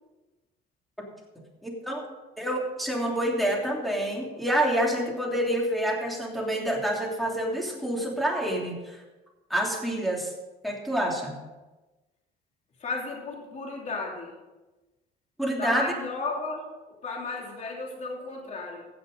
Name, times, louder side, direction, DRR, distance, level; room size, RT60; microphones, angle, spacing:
voice 1, 1.6-2.1 2.4-9.0 9.5-10.3 10.6-11.3 15.4-15.9, right 1 dB, ahead, -1 dB, 3.0 m, -27 dB
voice 2, 12.8-14.3 15.6-16.7 17.0-18.9, left 3 dB, 45° left, -1 dB, 3.1 m, -34 dB
16.0 x 6.8 x 5.3 m, 1.1 s
cardioid pair, 110°, 17 cm